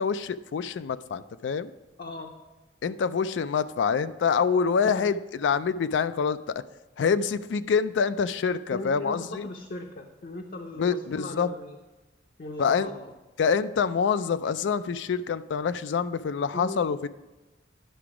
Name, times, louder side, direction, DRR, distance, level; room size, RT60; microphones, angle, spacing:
voice 1, 0.0-1.7 2.8-6.6 7.0-9.5 10.8-11.5 12.6-12.9 13.4-17.1, left 6 dB, 75° left, 13 dB, 0.4 m, -26 dB
voice 2, 2.0-2.3 4.8-5.1 8.7-11.8 12.4-13.0 16.5-16.8, left 2 dB, 50° left, 2 dB, 0.7 m, -38 dB
10.0 x 5.9 x 4.9 m, 1.1 s
head